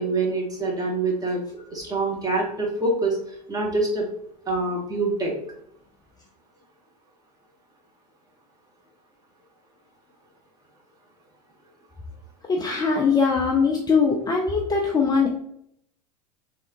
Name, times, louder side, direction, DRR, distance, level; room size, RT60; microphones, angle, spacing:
voice 1, 0.0-1.4 1.7-3.2 3.5-4.1 4.5-5.3, right 2 dB, 15° right, -2 dB, 1.1 m, -25 dB
voice 2, 12.5-15.3, left 5 dB, 20° left, 0 dB, 0.4 m, -21 dB
3.2 x 2.4 x 2.8 m, 0.72 s
hypercardioid pair, 85°, 21 cm